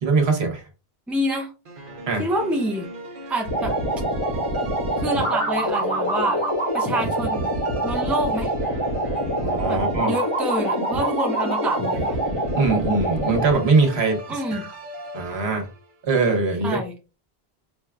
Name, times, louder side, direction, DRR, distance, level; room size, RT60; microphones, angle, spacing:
voice 1, 0.0-0.6 2.1-2.2 9.4-10.2 12.6-14.7 15.1-15.7 16.0-16.8, right 4 dB, 80° right, 3 dB, 1.2 m, -22 dB
voice 2, 1.1-1.5 2.2-2.9 3.3-3.7 5.0-6.4 6.7-7.5 7.8-8.5 9.7-12.2 14.3-14.6 16.6-16.9, right 1 dB, ahead, 2 dB, 0.5 m, -27 dB
sound 1, 1.6-16.0, equal, 55° right, 0.9 m, -38 dB
sound 2, 3.4-13.5, right 1 dB, 30° left, 1.2 m, -25 dB
5.0 x 2.3 x 2.2 m, 0.30 s
omnidirectional pair, 1.1 m